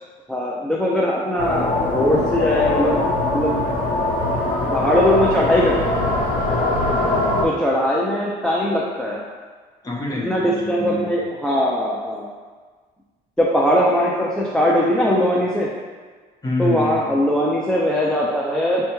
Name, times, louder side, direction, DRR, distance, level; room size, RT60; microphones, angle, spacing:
voice 1, 0.3-3.0 3.3-3.6 4.7-6.0 7.4-9.2 10.2-12.3 13.4-15.7 16.6-18.8, left 1 dB, 5° left, -4 dB, 0.4 m, -20 dB
sound 1, 1.4-7.4, left 2 dB, 55° left, 0.8 m, -22 dB
voice 2, 6.8-7.5 9.8-11.1 16.4-17.1, left 2 dB, 20° left, -4 dB, 1.0 m, -27 dB
6.4 x 2.2 x 3.0 m, 1.5 s
cardioid pair, 110°, 17 cm